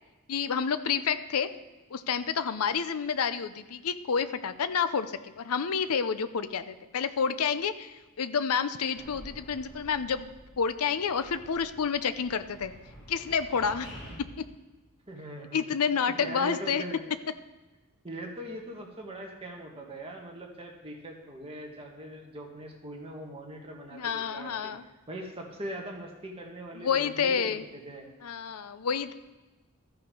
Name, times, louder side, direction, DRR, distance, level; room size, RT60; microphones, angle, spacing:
voice 1, 0.3-1.5 1.9-12.7 13.1-13.9 14.4-14.5 15.5-16.8 23.9-24.9 26.8-27.6 28.2-29.1, left 6 dB, 80° left, 12 dB, 0.6 m, -29 dB
sound 1, 9.0-10.6 10.9-14.1, equal, 25° left, 3.6 m, -49 dB
voice 2, 15.1-15.6 16.0-17.0 18.0-24.8 25.1-28.1, right 1 dB, 25° right, 0 dB, 1.7 m, -41 dB
13.5 x 5.6 x 5.3 m, 1.2 s
head